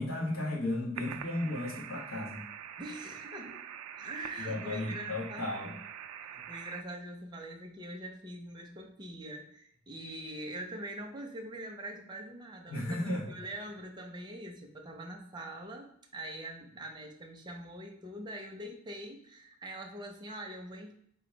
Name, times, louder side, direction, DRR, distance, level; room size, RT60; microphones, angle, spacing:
voice 1, 0.0-2.4 4.4-5.7 12.7-13.3, left 1 dB, 75° left, -3 dB, 1.2 m, -34 dB
sound 1, 0.9-6.8, right 9 dB, 85° right, 0.3 m, -45 dB
voice 2, 2.8-3.6 4.0-5.7 6.2-20.9, right 1 dB, 20° right, 2 dB, 0.6 m, -43 dB
3.9 x 2.3 x 4.4 m, 0.70 s
head